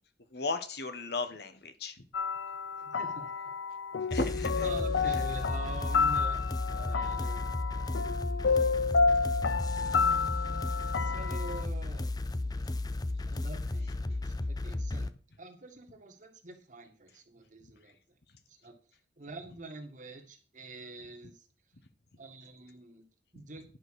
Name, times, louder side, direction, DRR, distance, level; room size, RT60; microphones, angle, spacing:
voice 1, 0.3-2.1 4.1-4.7, left 3 dB, 60° left, 10 dB, 1.1 m, -35 dB
sound 1, 2.1-11.6, left 5 dB, 85° left, 0.6 m, -30 dB
voice 2, 2.8-3.5 4.6-6.4 6.7-7.4 7.7-8.3 9.2-9.7 10.3-10.5 10.9-12.1 13.3-15.1 15.4-18.2 18.5-18.8 19.2-21.5 22.2-23.1 23.3-23.6, right 2 dB, 45° right, 5 dB, 1.7 m, -46 dB
sound 2, 4.1-15.1, left 2 dB, 20° left, 0.5 m, -34 dB
10.5 x 5.1 x 6.3 m, 0.38 s
head